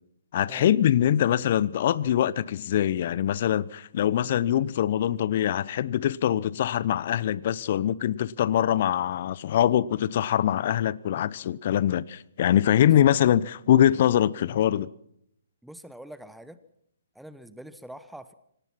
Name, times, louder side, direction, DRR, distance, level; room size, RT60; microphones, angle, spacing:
voice 1, 0.3-14.9, left 11 dB, 45° left, 0.8 m, -23 dB
voice 2, 15.6-16.6 17.1-18.3, right 1 dB, ahead, 1.1 m, -44 dB
25.0 x 18.5 x 6.0 m
figure-of-eight pair, 135°, 0 cm